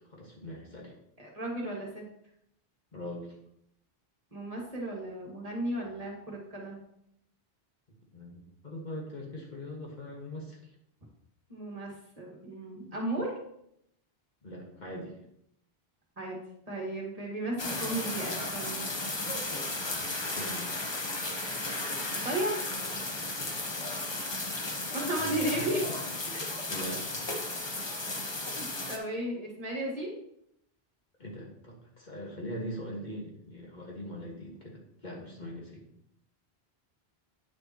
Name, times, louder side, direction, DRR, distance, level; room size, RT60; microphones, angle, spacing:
voice 1, 0.1-0.9 2.9-3.3 8.1-10.7 14.4-15.2 19.7-20.7 23.4-23.6 25.2-25.7 26.3-26.4 26.7-27.2 28.1-28.2 31.2-35.8, equal, 50° left, -2 dB, 1.7 m, -41 dB
voice 2, 1.2-2.0 4.3-6.8 11.5-13.3 16.2-16.4 16.7-18.9 22.2-22.6 24.9-25.8 28.6-30.1, right 1 dB, 35° right, -2 dB, 1.7 m, -34 dB
sound 1, 17.6-29.0, left 2 dB, 30° left, 0.8 m, -34 dB
9.3 x 6.6 x 2.9 m, 0.75 s
omnidirectional pair, 1.0 m